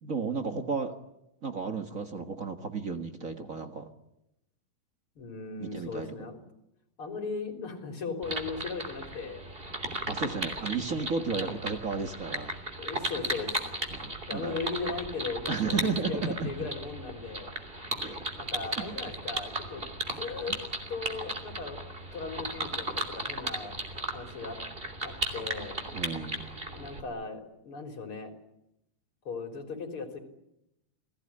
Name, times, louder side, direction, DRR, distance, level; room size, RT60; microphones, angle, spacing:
voice 1, 0.0-1.0 1.4-3.9 5.6-6.2 10.1-12.5 12.8-12.9 13.9-14.6 15.5-16.7 18.0-18.2 18.5-19.0 20.5-20.6 25.9-26.4, right 4 dB, 50° right, 6 dB, 0.9 m, -33 dB
voice 2, 5.2-6.4 7.0-9.4 11.4-11.5 12.8-13.6 14.3-17.5 18.4-19.8 20.2-20.5 20.9-21.8 22.1-23.8 24.0-24.6 25.0-25.8 26.7-28.3 29.2-30.2, left 4 dB, 35° left, 4 dB, 4.4 m, -38 dB
sound 1, 8.2-27.0, right 1 dB, 15° right, 2.8 m, -36 dB
29.5 x 18.5 x 9.9 m, 0.85 s
omnidirectional pair, 4.2 m